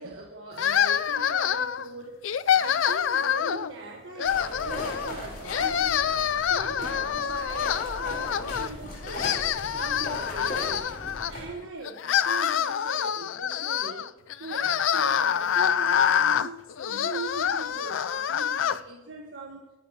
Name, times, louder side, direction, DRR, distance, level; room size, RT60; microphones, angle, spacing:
voice 1, 0.0-2.2 2.5-6.0 6.5-9.3 9.7-10.9 11.3-14.1 14.4-16.6 16.9-19.7, right 3 dB, 85° right, 0 dB, 1.5 m, -40 dB
sound 1, 0.6-1.8 2.2-3.7 4.2-5.1 5.4-8.7 9.0-11.3 11.8-18.8, left 8 dB, 85° left, 0.4 m, -26 dB
sound 2, 4.2-11.5, left 1 dB, 45° left, 4.3 m, -38 dB
23.5 x 11.5 x 3.0 m, 1.1 s
head